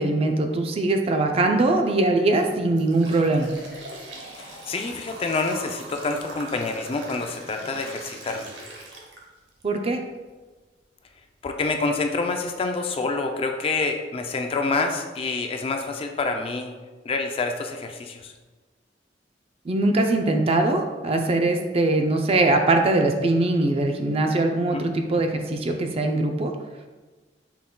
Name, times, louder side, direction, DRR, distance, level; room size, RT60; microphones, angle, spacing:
voice 1, 0.0-3.5 9.6-10.0 19.7-26.5, right 2 dB, 35° right, 4 dB, 0.4 m, -22 dB
sound 1, 2.5-9.6 10.1-10.2 11.0-11.1 11.6-11.7 12.2-12.4, right 2 dB, 75° right, 0.9 m, -41 dB
voice 2, 4.3-8.5 11.4-16.7 17.0-18.3 24.7-24.8, left 3 dB, 35° left, 5 dB, 0.4 m, -27 dB
5.7 x 3.7 x 2.2 m, 1.3 s
head